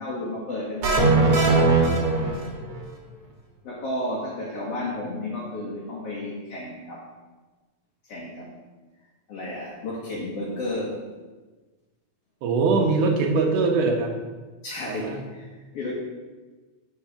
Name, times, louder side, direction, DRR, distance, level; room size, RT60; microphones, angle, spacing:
voice 1, 0.0-1.6 3.6-7.1 8.1-8.5 9.3-11.0 14.6-15.9, left 1 dB, 55° left, -4 dB, 2.3 m, -32 dB
sound 1, 0.8-2.8, right 3 dB, 50° right, 2.4 m, -20 dB
voice 2, 12.4-14.2 14.9-15.2, right 4 dB, 90° right, 2 dB, 2.8 m, -22 dB
8.7 x 5.6 x 7.2 m, 1.3 s
omnidirectional pair, 3.5 m